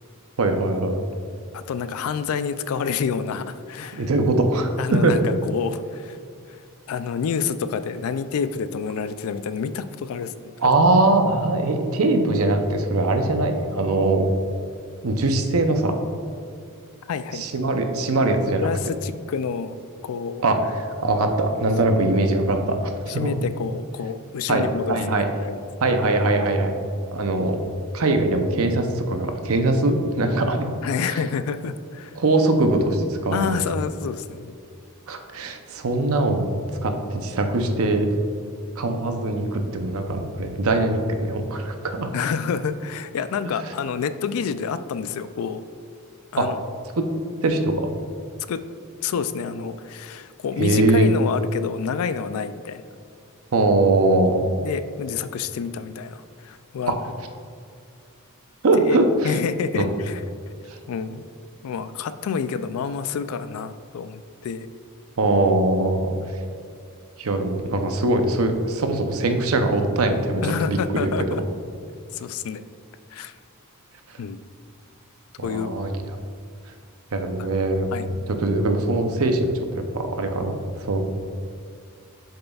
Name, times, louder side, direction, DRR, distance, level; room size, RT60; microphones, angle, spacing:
voice 1, 0.4-1.0 3.9-5.1 10.6-14.3 15.0-16.0 17.3-18.7 20.4-23.3 24.5-25.3 25.8-26.7 27.1-27.6 27.9-30.7 31.1-31.2 32.2-33.6 35.1-36.5 36.8-38.1 38.8-42.1 43.4-43.7 46.4-46.5 47.0-47.1 47.4-47.9 50.6-51.1 53.5-54.4 56.9-57.0 58.6-59.4 59.7-60.0 60.7-60.8 65.2-66.1 67.2-71.1 75.4-76.0 77.1-79.5 79.9-81.0, right 2 dB, 70° right, 6 dB, 0.7 m, -22 dB
voice 2, 1.5-4.1 4.8-6.2 6.5-6.6 6.9-10.3 10.6-10.7 17.1-17.4 18.6-19.7 20.0-20.4 21.8-22.0 23.1-25.6 30.8-32.2 33.3-34.6 42.1-45.6 46.3-46.6 48.5-48.6 49.0-52.8 54.6-56.9 58.8-59.0 59.2-60.2 60.9-61.2 61.6-64.7 70.4-71.4 72.1-72.6 73.1-73.3 74.2-74.4 75.4-75.7 77.9-78.1, left 6 dB, 70° left, 12 dB, 0.3 m, -28 dB
8.0 x 6.6 x 2.3 m, 2.3 s
head